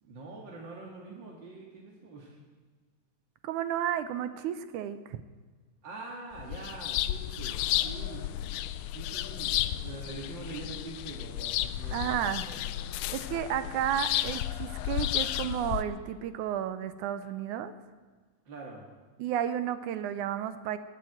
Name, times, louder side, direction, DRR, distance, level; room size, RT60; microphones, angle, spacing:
voice 1, 0.0-2.4 5.8-8.3 8.9-12.8 18.5-18.8, right 3 dB, 40° right, -2 dB, 2.0 m, -44 dB
voice 2, 3.4-5.2 11.9-12.4 13.1-17.7 19.2-20.8, right 10 dB, 75° right, 12 dB, 1.9 m, -32 dB
sound 1, 6.4-15.8, left 13 dB, 80° left, 1.9 m, -33 dB
20.0 x 7.8 x 7.9 m, 1.4 s
omnidirectional pair, 3.9 m